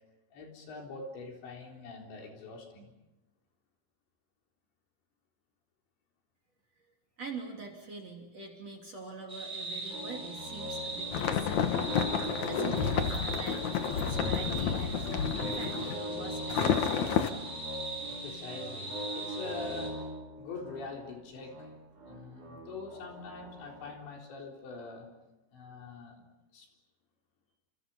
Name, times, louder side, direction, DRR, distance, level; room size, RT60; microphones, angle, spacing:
voice 1, 0.3-2.9 18.1-20.0 20.4-21.7 22.1-25.1 25.5-26.2 26.5-26.7, left 3 dB, 65° left, 1 dB, 6.1 m, -44 dB
voice 2, 7.2-17.3, right 3 dB, 35° right, 3 dB, 3.7 m, -45 dB
sound 1, 9.3-19.9, right 3 dB, 5° right, 6.7 m, -40 dB
sound 2, 9.9-23.9, equal, 65° right, 9.7 m, -42 dB
sound 3, 11.1-16.0 16.5-17.3, left 7 dB, 85° left, 1.6 m, -30 dB
30.0 x 27.5 x 5.6 m, 1.0 s
omnidirectional pair, 5.6 m